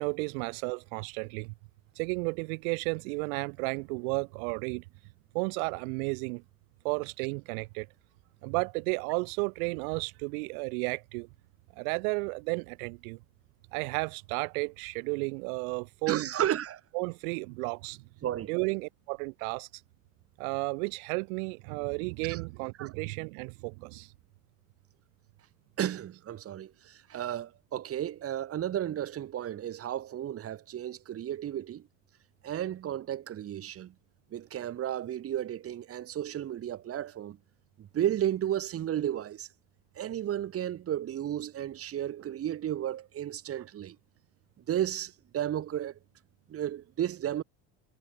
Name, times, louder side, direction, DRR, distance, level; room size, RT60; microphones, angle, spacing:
voice 1, 0.0-1.5 2.0-4.8 5.3-6.4 6.8-7.9 8.4-11.3 11.8-13.2 13.7-16.3 16.9-18.0 18.5-19.7 20.4-24.1, right 32 dB, 90° right, 0.8 m, -33 dB
voice 2, 16.1-16.8 18.2-18.5 22.3-22.4 22.8-22.9 25.8-31.9 32.4-33.9 34.3-37.4 37.8-39.5 40.0-44.0 44.7-46.0 46.5-47.4, right 11 dB, 35° right, 1.0 m, -33 dB
supercardioid pair, 115°, 41 cm